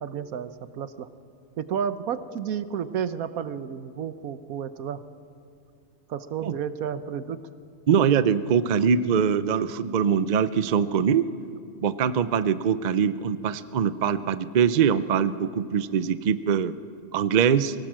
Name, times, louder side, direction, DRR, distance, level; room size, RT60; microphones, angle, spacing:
voice 1, 0.0-1.1 1.6-5.0 6.1-7.4, right 8 dB, 85° right, 12 dB, 1.3 m, -31 dB
voice 2, 7.9-11.3 11.8-16.7 17.1-17.7, right 7 dB, 55° right, 14 dB, 0.5 m, -23 dB
22.5 x 18.0 x 7.5 m, 2.5 s
omnidirectional pair, 1.5 m